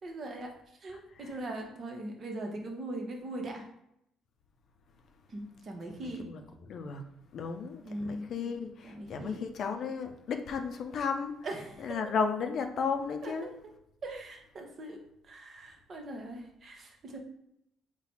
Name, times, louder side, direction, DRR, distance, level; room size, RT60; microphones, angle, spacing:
voice 1, 0.0-0.5 0.8-3.7 5.3-6.3 7.8-8.3 8.9-9.5 11.4-12.0 13.2-13.5 14.0-17.2, right 1 dB, 50° right, 2 dB, 1.0 m, -40 dB
voice 2, 6.0-11.5 11.8-13.5, left 5 dB, 60° left, 6 dB, 0.5 m, -34 dB
4.0 x 2.3 x 4.3 m, 0.78 s
hypercardioid pair, 55°, 0 cm